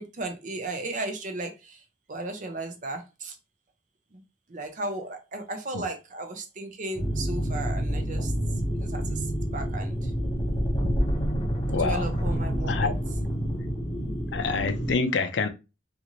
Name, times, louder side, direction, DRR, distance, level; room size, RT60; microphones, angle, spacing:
voice 1, 0.0-1.8 2.1-3.4 4.1-4.2 4.5-8.3 8.8-10.1 11.7-13.0, right 2 dB, 45° right, 0.5 m, -35 dB
sound 1, 7.0-14.9, equal, 25° left, 1.1 m, -28 dB
voice 2, 11.7-12.1 12.7-12.9 14.3-15.5, left 4 dB, 75° left, 0.4 m, -26 dB
2.6 x 2.5 x 2.9 m
head